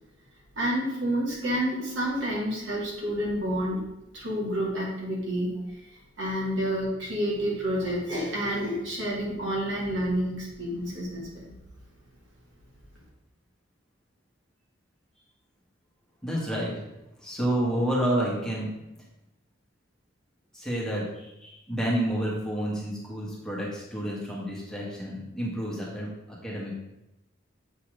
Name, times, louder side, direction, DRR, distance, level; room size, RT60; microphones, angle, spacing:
voice 1, 0.6-3.8 4.1-5.5 6.2-11.5, equal, 70° right, -4 dB, 2.5 m, -29 dB
voice 2, 16.2-16.8 17.2-18.7 20.5-26.7, right 1 dB, 5° left, -5 dB, 1.7 m, -30 dB
7.9 x 4.2 x 5.1 m, 0.87 s
head